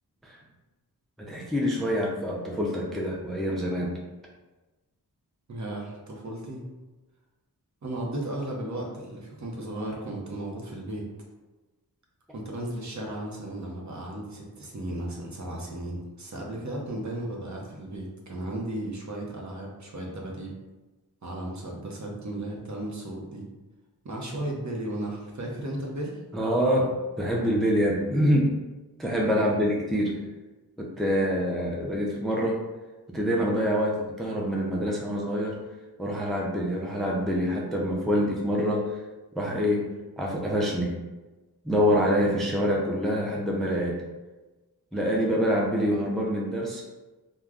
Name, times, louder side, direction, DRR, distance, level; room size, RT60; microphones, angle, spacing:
voice 1, 1.2-3.9 26.3-28.5 29.0-30.2 30.8-32.6 33.1-35.6 36.0-39.0 39.3-39.9 40.2-40.9 41.6-44.0 44.9-46.8, equal, ahead, -2 dB, 0.4 m, -26 dB
voice 2, 5.5-6.6 7.8-11.1 12.3-20.5 21.2-23.5 24.0-26.2 29.4-29.5, right 1 dB, 45° right, -1 dB, 0.8 m, -35 dB
3.3 x 2.2 x 2.4 m, 1.2 s
cardioid pair, 55°, 38 cm